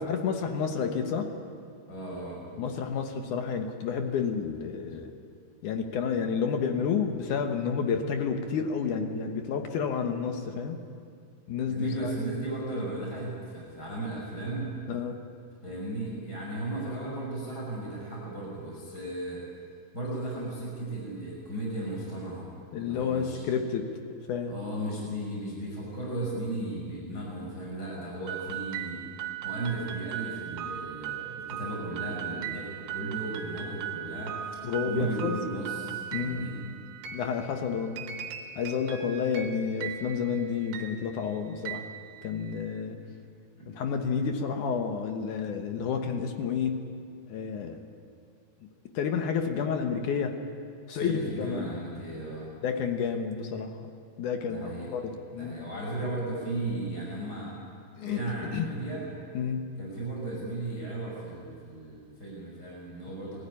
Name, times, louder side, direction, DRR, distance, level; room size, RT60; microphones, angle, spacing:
voice 1, 0.0-1.3 2.6-5.1 5.6-10.8 11.5-12.1 14.9-15.2 22.7-23.9 24.3-24.6 34.6-35.4 36.1-36.6 37.1-38.1 38.6-41.8 42.2-43.0 43.7-46.8 47.3-47.8 48.9-50.4 50.9-51.8 52.6-53.8 54.2-55.7 58.0-58.2 58.5-58.7 59.3-59.6, left 6 dB, 65° left, 5 dB, 2.2 m, -30 dB
voice 2, 1.9-2.4 11.7-14.7 15.6-19.4 19.9-22.5 22.7-23.4 24.5-29.0 29.4-34.4 34.8-36.6 43.0-43.1 43.6-43.7 50.9-52.5 54.5-54.9 55.3-57.5 58.0-59.0 59.8-63.4, right 2 dB, 25° left, -4 dB, 6.1 m, -35 dB
sound 1, 28.3-42.7, right 10 dB, 65° right, 2.0 m, -39 dB
20.0 x 14.5 x 9.8 m, 2.2 s
omnidirectional pair, 4.7 m